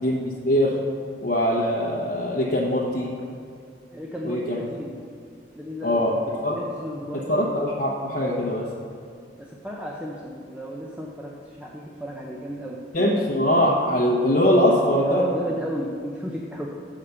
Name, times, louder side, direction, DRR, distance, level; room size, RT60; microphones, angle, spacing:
voice 1, 0.0-0.8 1.2-3.1 4.2-4.6 5.8-6.1 6.4-6.6 7.3-8.7 12.9-15.2, left 1 dB, 50° left, -6 dB, 1.0 m, -22 dB
voice 2, 3.9-5.0 5.5-6.1 6.5-7.7 9.4-12.8 15.0-16.7, equal, 10° right, -2 dB, 0.6 m, -33 dB
7.1 x 5.0 x 6.7 m, 2.3 s
head